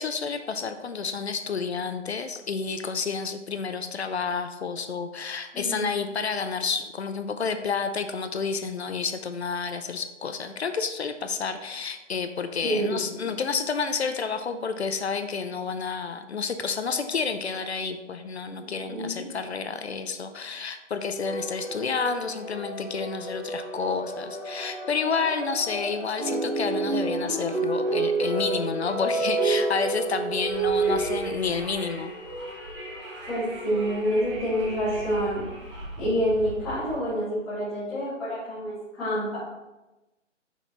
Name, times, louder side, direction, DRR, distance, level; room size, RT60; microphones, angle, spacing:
voice 1, 0.0-32.1, left 5 dB, 60° left, 8 dB, 0.6 m, -30 dB
voice 2, 5.5-5.9 12.6-13.4 18.9-19.2 33.3-39.4, equal, ahead, -15 dB, 0.6 m, -28 dB
sound 1, 21.2-35.6, equal, 25° left, 1.8 m, -38 dB
sound 2, 26.2-31.2, right 4 dB, 50° right, 2.0 m, -27 dB
Wind, 30.3-37.0, right 1 dB, 25° right, 1.0 m, -41 dB
6.0 x 4.4 x 3.9 m, 1.0 s
figure-of-eight pair, 150°, 38 cm